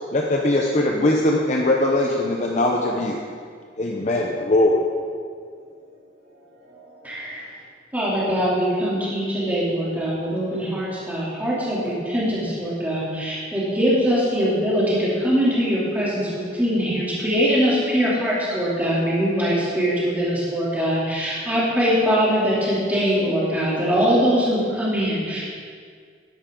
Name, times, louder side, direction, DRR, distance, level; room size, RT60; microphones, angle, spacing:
voice 1, 0.1-3.2 3.8-4.9, left 1 dB, 40° left, -1 dB, 0.7 m, -20 dB
voice 2, 5.2-7.5, right 1 dB, 60° right, -6 dB, 3.1 m, -53 dB
voice 3, 7.0-7.4 7.9-25.4, equal, 10° right, -8 dB, 2.9 m, -22 dB
12.0 x 10.0 x 3.8 m, 2.1 s
head